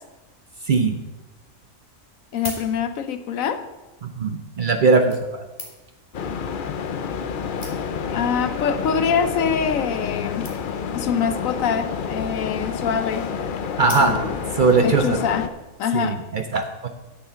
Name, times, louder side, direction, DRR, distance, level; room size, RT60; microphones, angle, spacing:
sound 1, 2.1-3.2 4.1-4.3 5.1-6.1 6.9-7.0 7.2-7.3 7.6-8.1 8.8-9.1 9.4-9.5 9.7-9.8 9.9-10.1 10.4-10.9 11.9-12.4 13.8-14.5 15.1-15.2, left 1 dB, 25° left, 1.9 m, -39 dB
voice 1, 2.3-3.6 8.1-10.6 10.9-13.4 14.0-14.4 14.8-16.2, left 7 dB, 80° left, 11 dB, 1.1 m, -25 dB
voice 2, 4.2-5.4 13.8-14.2 14.6-15.2 15.9-16.9, right 4 dB, 50° right, 6 dB, 0.6 m, -20 dB
sound 2, 6.1-15.5, left 6 dB, 55° left, 0.6 m, -29 dB
9.9 x 6.9 x 5.7 m, 1.1 s
omnidirectional pair, 1.4 m